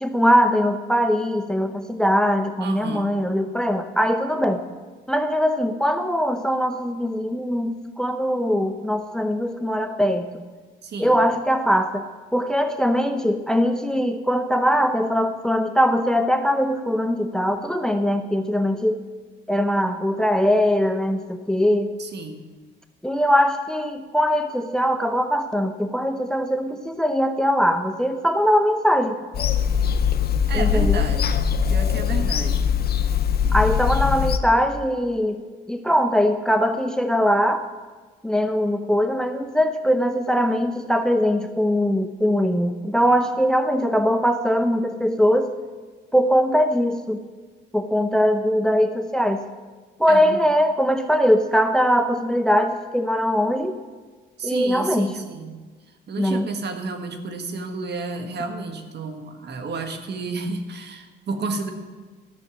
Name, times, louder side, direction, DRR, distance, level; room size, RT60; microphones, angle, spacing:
voice 1, 0.0-4.6 5.1-10.4 11.0-12.0 12.3-19.0 19.5-21.9 23.0-29.2 30.5-31.0 33.5-35.4 35.7-37.6 38.2-45.5 46.1-47.2 47.7-49.4 50.0-53.7 54.4-55.1 56.2-56.5, equal, 5° left, 8 dB, 0.7 m, -21 dB
voice 2, 2.6-3.2 10.8-11.2 22.0-22.5 30.5-32.8 50.1-50.4 54.4-55.6 56.1-61.7, right 3 dB, 55° right, 6 dB, 1.5 m, -31 dB
Bird vocalization bird call bird song / Telephone, 29.3-34.4, left 7 dB, 50° left, 0.8 m, -21 dB
13.0 x 6.4 x 7.5 m, 1.4 s
cardioid pair, 90°, 20 cm